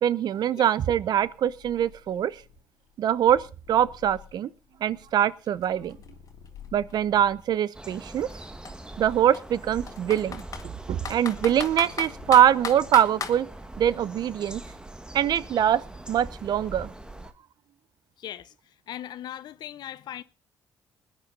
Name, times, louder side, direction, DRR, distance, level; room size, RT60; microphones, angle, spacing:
voice 1, 0.0-2.4 3.0-4.5 4.8-6.0 6.7-8.3 9.0-10.4 10.9-13.5 13.8-14.6 15.1-16.9, right 10 dB, 60° right, 0.6 m, -23 dB
Purr, 1.1-7.6 8.2-13.5, left 8 dB, 85° left, 2.3 m, -51 dB
Computer keyboard, 5.1-5.2 5.5-7.4 8.2-8.3 8.6-8.7 9.3-10.7 11.0-13.4, left 6 dB, 45° left, 1.9 m, -35 dB
sound 1, 7.7-17.3, right 1 dB, 10° right, 1.5 m, -42 dB
voice 2, 18.2-18.5 18.9-20.2, left 11 dB, 65° left, 0.7 m, -38 dB
21.0 x 9.7 x 3.9 m
supercardioid pair, 60°, 8 cm